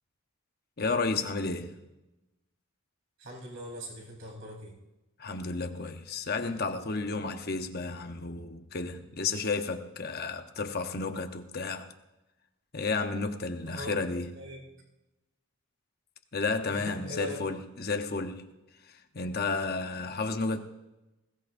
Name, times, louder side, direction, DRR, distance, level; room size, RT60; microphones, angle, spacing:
voice 1, 0.8-1.8 5.2-11.9 12.7-14.3 16.3-18.5 18.9-20.6, left 3 dB, 45° left, 0.9 m, -32 dB
voice 2, 3.2-4.7 13.6-13.9 14.3-14.6 16.7-17.4, equal, 60° right, 4.3 m, -41 dB
21.0 x 17.0 x 2.6 m
head